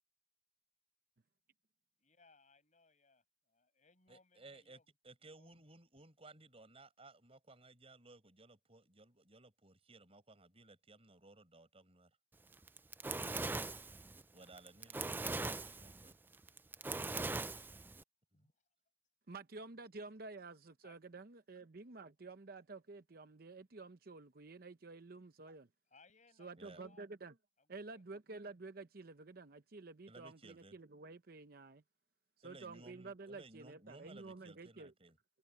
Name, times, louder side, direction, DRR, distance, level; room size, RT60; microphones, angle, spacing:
voice 1, 2.0-4.8 5.2-5.6 18.3-18.6 20.8-21.0 25.9-27.1 27.6-28.0 32.4-32.9, left 4 dB, 40° left, 6.6 m, -68 dB
voice 2, 4.1-4.8 5.0-12.2 14.3-16.2 18.3-18.5 26.6-26.8 30.1-30.8 32.4-35.2, right 2 dB, 30° right, 5.6 m, -59 dB
Fire, 12.5-18.0, right 3 dB, 10° right, 0.3 m, -41 dB
voice 3, 19.3-25.7 26.4-27.4 27.7-31.8 32.4-34.9, right 3 dB, 50° right, 0.8 m, -51 dB
open air
head